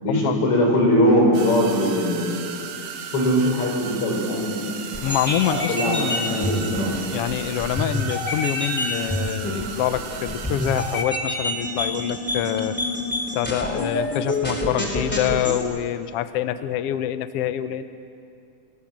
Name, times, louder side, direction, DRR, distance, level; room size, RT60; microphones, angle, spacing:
voice 1, 0.0-2.4 3.1-4.7 5.5-7.0, equal, 45° left, -1 dB, 5.6 m, -21 dB
sound 1, 1.3-11.0, right 7 dB, 85° right, 2.8 m, -35 dB
sound 2, 4.9-15.6, left 1 dB, 5° left, 2.2 m, -28 dB
voice 2, 5.0-6.7 7.1-12.8 13.3-17.8, left 11 dB, 85° left, 11 dB, 1.3 m, -26 dB
27.5 x 17.0 x 7.4 m, 2.5 s
omnidirectional pair, 3.6 m